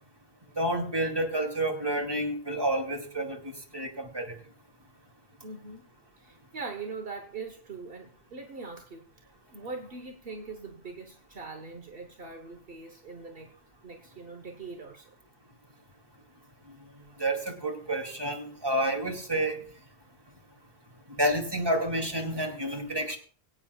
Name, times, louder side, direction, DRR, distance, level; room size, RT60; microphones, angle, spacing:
voice 1, 0.6-4.3 17.2-19.6 21.2-23.2, right 1 dB, 20° right, 2 dB, 2.6 m, -29 dB
voice 2, 5.4-5.9 6.2-13.5 13.8-15.1, right 4 dB, 60° right, 3 dB, 1.3 m, -42 dB
23.5 x 8.8 x 2.4 m, 0.41 s
omnidirectional pair, 1.1 m